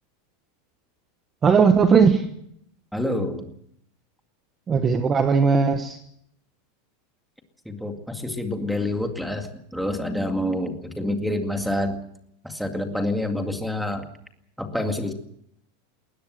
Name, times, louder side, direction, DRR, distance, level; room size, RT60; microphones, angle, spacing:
voice 1, 1.4-2.3 4.7-6.0, right 5 dB, 20° right, 8 dB, 1.1 m, -18 dB
voice 2, 2.9-3.5 7.7-12.0 12.4-14.1 14.6-15.1, left 1 dB, ahead, 5 dB, 2.2 m, -27 dB
21.0 x 19.0 x 7.9 m, 0.73 s
supercardioid pair, 165°, 0 cm